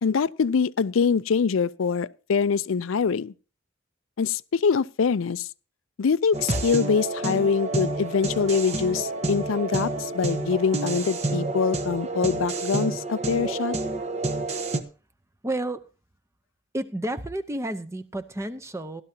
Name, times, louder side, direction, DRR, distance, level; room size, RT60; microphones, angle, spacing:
voice 1, 0.0-3.3 4.2-5.5 6.0-13.7, left 6 dB, 80° left, 0.5 m, -24 dB
sound 1, 6.3-14.8, right 2 dB, 35° right, 1.0 m, -29 dB
voice 2, 15.4-15.8 16.7-19.0, right 1 dB, 15° right, 0.7 m, -31 dB
16.5 x 12.0 x 2.8 m
head